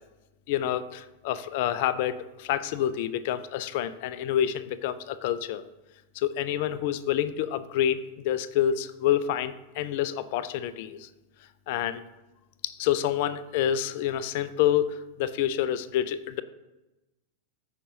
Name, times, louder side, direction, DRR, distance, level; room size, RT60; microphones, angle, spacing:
voice 1, 0.5-5.6 6.1-11.1 11.7-12.0 12.6-16.4, left 10 dB, 50° left, 14 dB, 0.5 m, -28 dB
13.5 x 5.1 x 2.7 m, 1.0 s
figure-of-eight pair, 90°, 0 cm